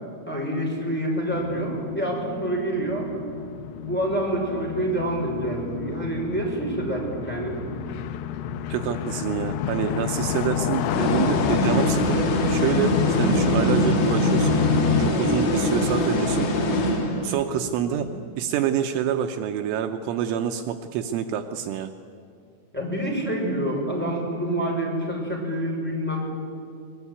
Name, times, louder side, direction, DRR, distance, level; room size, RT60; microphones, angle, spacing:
voice 1, 0.3-3.1 3.8-7.7 17.9-18.1 22.7-26.2, right 1 dB, ahead, -2 dB, 5.5 m, -27 dB
sound 1, 1.3-15.1, left 7 dB, 90° left, 2.2 m, -28 dB
voice 2, 8.7-14.6 15.0-16.5 17.2-18.1 18.4-21.9, right 9 dB, 80° right, 7 dB, 3.2 m, -27 dB
sound 2, 10.9-17.5, left 1 dB, 65° left, 4.9 m, -23 dB
23.0 x 21.0 x 9.6 m, 2.3 s
omnidirectional pair, 5.7 m